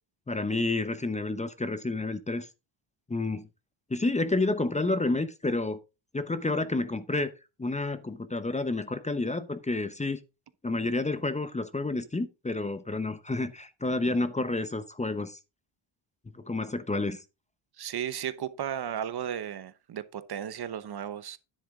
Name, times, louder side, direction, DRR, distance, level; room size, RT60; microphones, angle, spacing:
voice 1, 0.3-2.5 3.1-3.5 3.9-5.8 6.1-7.3 7.6-10.2 10.6-15.4 16.4-17.2, left 2 dB, 15° left, 0.8 m, -29 dB
voice 2, 17.8-21.4, right 9 dB, 55° right, 0.9 m, -34 dB
10.0 x 7.7 x 3.6 m
cardioid pair, 100°, 47 cm